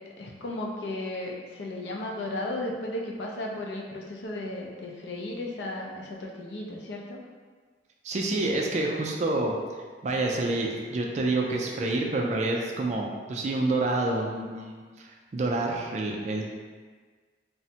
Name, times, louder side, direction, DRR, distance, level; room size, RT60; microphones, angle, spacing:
voice 1, 0.2-7.2, left 1 dB, 70° left, -1 dB, 0.4 m, -35 dB
voice 2, 8.0-9.6 10.0-16.5, right 2 dB, 40° right, 0 dB, 0.3 m, -28 dB
3.2 x 2.1 x 2.8 m, 1.5 s
head